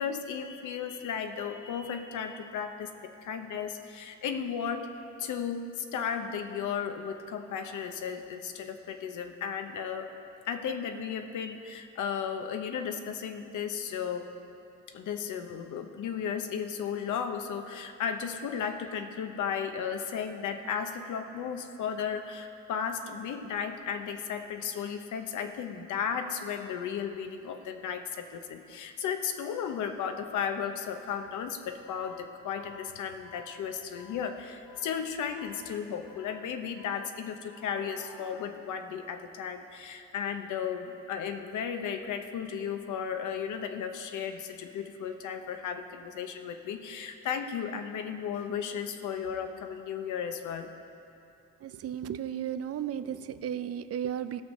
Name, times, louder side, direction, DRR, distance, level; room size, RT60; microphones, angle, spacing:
voice 1, 0.0-4.9 5.2-10.1 10.5-14.3 14.9-50.7, left 7 dB, 80° left, 6 dB, 0.9 m, -35 dB
voice 2, 51.6-54.4, right 9 dB, 55° right, 12 dB, 0.5 m, -34 dB
17.0 x 6.4 x 5.3 m, 2.7 s
cardioid pair, 90°, 30 cm